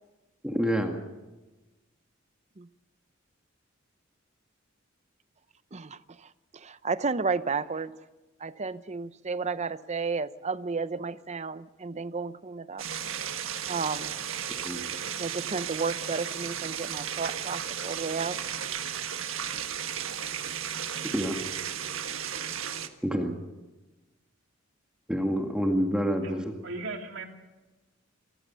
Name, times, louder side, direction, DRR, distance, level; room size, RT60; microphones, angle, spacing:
voice 1, 0.4-1.0 14.6-14.9 21.1-21.4 23.0-23.4 25.1-26.5, equal, 5° right, 2.0 m, -27 dB
voice 2, 6.5-7.9 8.4-12.8 13.7-14.1 15.2-18.4, right 4 dB, 35° right, 0.7 m, -32 dB
sound 1, 12.8-22.9, right 8 dB, 80° right, 1.4 m, -34 dB
voice 3, 26.2-27.3, right 3 dB, 65° right, 3.0 m, -38 dB
27.5 x 15.5 x 6.9 m
head